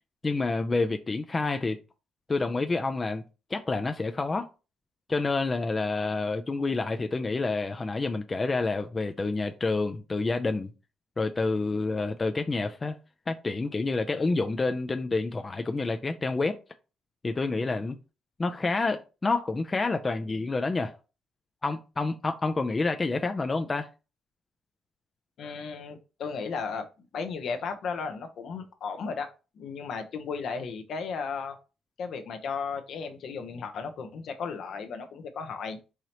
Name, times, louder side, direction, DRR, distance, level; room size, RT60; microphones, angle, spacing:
voice 1, 0.2-1.8 2.3-3.2 3.5-4.5 5.1-10.7 11.2-13.0 13.3-16.6 17.2-18.0 18.4-21.0 21.6-23.9, left 3 dB, 25° left, 0.4 m, -28 dB
voice 2, 25.4-26.9 27.1-29.3 29.6-31.6 32.0-35.8, left 5 dB, 65° left, 0.8 m, -35 dB
4.8 x 2.8 x 2.9 m
cardioid pair, 100°, 0 cm